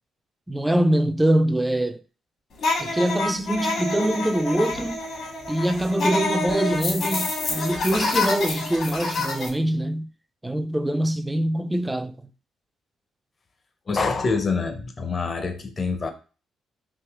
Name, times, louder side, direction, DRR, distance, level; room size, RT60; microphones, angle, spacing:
voice 1, 0.5-2.0 2.8-5.0 5.5-10.1 10.4-12.1, right 1 dB, 10° right, 0.3 m, -23 dB
sound 1, 2.6-9.5, left 2 dB, 70° left, 1.3 m, -27 dB
voice 2, 13.9-16.1, left 4 dB, 35° left, 0.6 m, -26 dB
3.6 x 2.7 x 3.4 m
cardioid pair, 90°, 0 cm